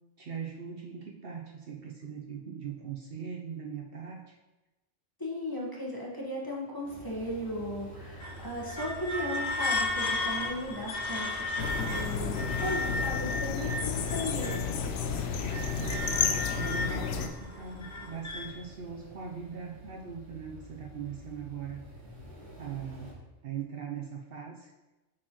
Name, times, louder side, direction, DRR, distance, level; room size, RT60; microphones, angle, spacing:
voice 1, 0.2-4.4 15.8-21.8 22.6-24.7, right 7 dB, 60° right, 0 dB, 0.7 m, -40 dB
voice 2, 5.2-14.6, left 1 dB, 20° left, -4 dB, 1.1 m, -36 dB
sound 1, 6.8-23.1, equal, 90° right, 2.4 m, -48 dB
sound 2, 8.2-14.8 15.2-18.5, left 2 dB, 40° left, 0.8 m, -34 dB
sound 3, 11.6-17.3, left 6 dB, 70° left, 0.8 m, -31 dB
8.5 x 4.3 x 3.0 m, 1.1 s
omnidirectional pair, 1.2 m